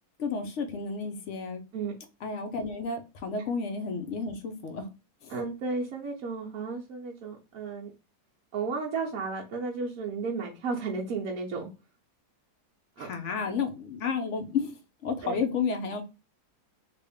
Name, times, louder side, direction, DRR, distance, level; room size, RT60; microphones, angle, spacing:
voice 1, 0.2-1.6 2.2-4.9 5.2-5.4 13.0-16.0, left 5 dB, 60° left, 0.9 m, -32 dB
voice 2, 5.3-7.9 8.5-11.7 13.0-13.1 15.2-15.4, right 4 dB, 65° right, 1.1 m, -33 dB
3.4 x 2.5 x 3.4 m
omnidirectional pair, 1.7 m